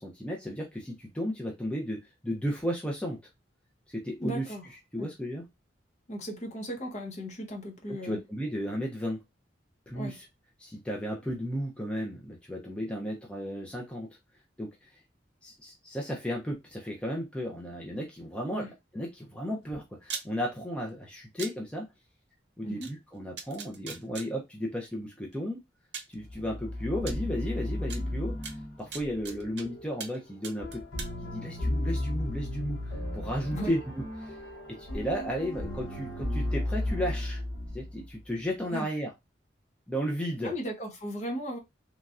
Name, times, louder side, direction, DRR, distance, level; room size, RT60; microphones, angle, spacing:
voice 1, 0.0-3.2 3.9-4.5 4.9-5.4 8.0-9.2 9.9-10.2 10.6-14.1 14.6-15.0 15.4-18.7 18.9-21.9 22.6-25.6 26.1-30.8 31.2-34.4 34.8-37.4 37.7-39.1 39.9-40.5, equal, 5° left, 0.4 m, -34 dB
voice 2, 4.2-4.6 5.0-5.1 6.1-8.2 9.9-10.2 18.5-18.7 22.6-22.9 33.5-33.7 38.7-38.9 40.4-41.6, equal, 40° left, 0.8 m, -36 dB
sound 1, 20.0-20.3 21.4-21.5 22.8-22.9 23.4-24.3 25.3-25.4 25.9-26.1 27.1-27.2 27.9-28.0 28.4-29.6 30.0-30.2 30.4-31.1, right 6 dB, 65° right, 0.5 m, -39 dB
sound 2, 26.2-38.3, left 1 dB, 90° left, 0.9 m, -34 dB
3.1 x 2.5 x 2.3 m
head